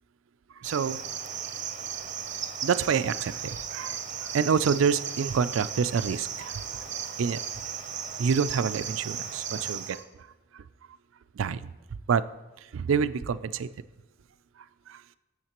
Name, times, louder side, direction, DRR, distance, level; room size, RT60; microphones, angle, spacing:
Cricket, 0.6-10.0, right 7 dB, 40° right, 0.7 m, -36 dB
voice 1, 0.6-1.0 2.6-6.8 7.2-7.4 8.2-10.0 10.5-10.6 11.4-11.6 12.1-12.2 12.7-13.7, right 6 dB, 80° right, 14 dB, 0.4 m, -27 dB
12.0 x 7.2 x 3.0 m, 1.2 s
head